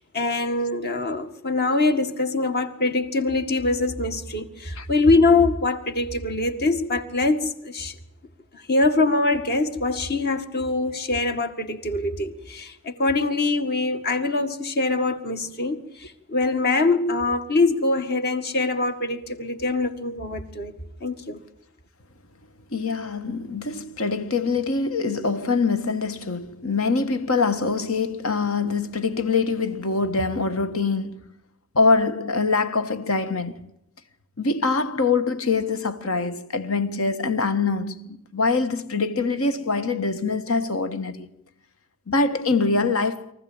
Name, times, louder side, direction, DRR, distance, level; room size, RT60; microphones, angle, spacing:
voice 1, 0.0-8.0 8.5-21.4, left 3 dB, 45° left, 1.9 m, -23 dB
voice 2, 22.7-31.2 31.7-33.7 34.4-41.3 42.1-43.3, left 4 dB, 65° left, 1.5 m, -24 dB
24.0 x 15.0 x 8.8 m
head